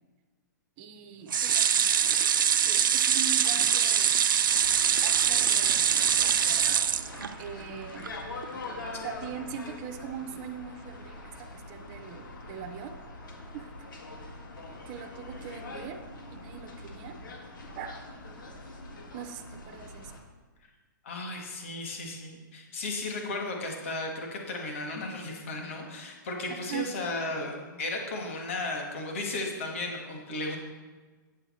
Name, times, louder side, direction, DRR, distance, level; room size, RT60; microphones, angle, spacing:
voice 1, 0.8-2.3 2.6-4.2 5.0-6.8 7.4-8.1 9.0-13.0 13.5-13.9 14.9-16.0 16.3-17.2 17.7-18.0 19.1-20.1 26.7-26.9, right 8 dB, 15° right, 4 dB, 0.3 m, -41 dB
sound 1, 1.3-7.6 8.0-8.1 8.4-8.5, right 8 dB, 85° right, 0.5 m, -24 dB
sound 2, 4.5-20.2, left 2 dB, 75° left, 1.8 m, -43 dB
voice 2, 21.0-30.6, left 2 dB, 40° left, 2 dB, 1.4 m, -35 dB
8.2 x 7.9 x 4.2 m, 1.3 s
hypercardioid pair, 180°, 11 cm